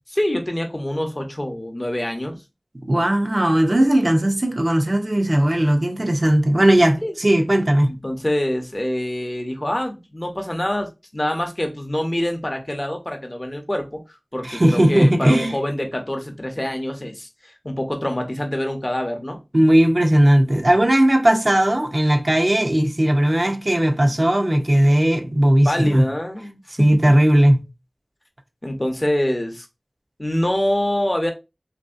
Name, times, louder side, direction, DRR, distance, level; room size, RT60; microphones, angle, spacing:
voice 1, 0.1-2.4 7.0-7.1 7.9-14.0 14.3-19.4 25.6-27.0 28.6-29.7 30.2-31.3, left 1 dB, 35° left, 0.6 m, -25 dB
voice 2, 2.8-7.9 14.4-15.5 19.5-26.0 26.8-27.6, right 1 dB, 50° right, 0.5 m, -17 dB
2.9 x 2.6 x 2.4 m
wide cardioid pair, 45°, 0 cm